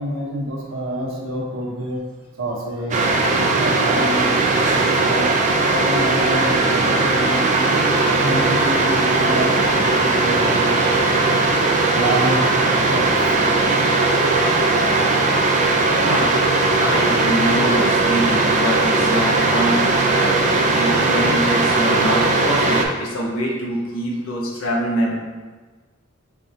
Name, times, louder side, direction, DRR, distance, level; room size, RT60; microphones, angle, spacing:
voice 1, 0.0-2.0 2.4-5.3 5.7-7.7 8.1-11.0 11.9-12.4 12.7-13.1, right 1 dB, 75° right, -3 dB, 1.0 m, -27 dB
sound 1, 2.9-22.9, right 3 dB, 35° right, 0.4 m, -18 dB
voice 2, 16.0-25.2, equal, 85° left, -3 dB, 0.9 m, -24 dB
4.3 x 3.6 x 2.7 m, 1.3 s
head